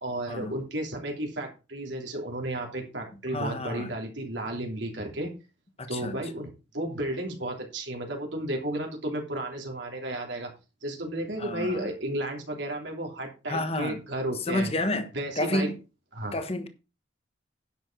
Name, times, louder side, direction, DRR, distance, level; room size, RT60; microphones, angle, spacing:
voice 1, 0.0-5.3 5.9-10.5 10.8-14.7 15.1-15.7 16.1-16.4, right 1 dB, 75° right, 3.1 m, -33 dB
voice 2, 3.3-3.9 5.8-6.2 11.4-11.9 13.5-14.0 14.4-15.1 15.4-15.8 16.3-16.7, left 1 dB, 35° left, 1.3 m, -30 dB
10.5 x 7.2 x 4.6 m
head